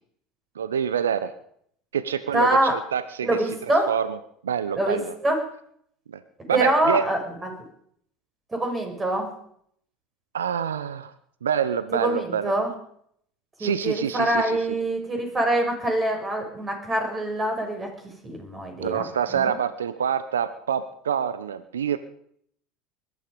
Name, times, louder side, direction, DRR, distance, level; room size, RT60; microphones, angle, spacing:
voice 1, 0.6-1.3 1.9-3.4 3.9-4.2 4.4-5.2 6.1-6.2 6.5-7.0 10.3-11.1 11.4-12.5 13.6-14.6 18.8-22.0, right 8 dB, 85° right, 13 dB, 0.8 m, -26 dB
voice 2, 2.3-2.7 3.2-3.9 4.7-5.0 5.2-5.4 6.5-7.5 8.5-9.3 12.0-12.7 13.6-17.9 18.2-19.0 19.3-19.5, right 1 dB, 20° right, 3 dB, 6.3 m, -24 dB
20.5 x 12.0 x 5.4 m, 0.67 s
hypercardioid pair, 75°, 0 cm